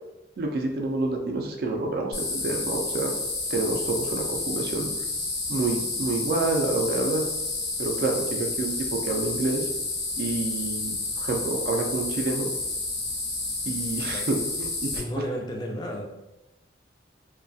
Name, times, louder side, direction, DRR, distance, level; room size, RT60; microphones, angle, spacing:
voice 1, 0.4-3.1 3.5-4.9 5.5-7.2 7.8-9.7 10.2-12.5 13.7-14.9, right 3 dB, 60° right, 2 dB, 0.3 m, -28 dB
sound 1, 2.1-15.0, left 3 dB, 70° left, 0.6 m, -30 dB
voice 2, 15.0-16.1, equal, 25° left, 1 dB, 0.3 m, -33 dB
2.3 x 2.1 x 2.6 m, 0.95 s
head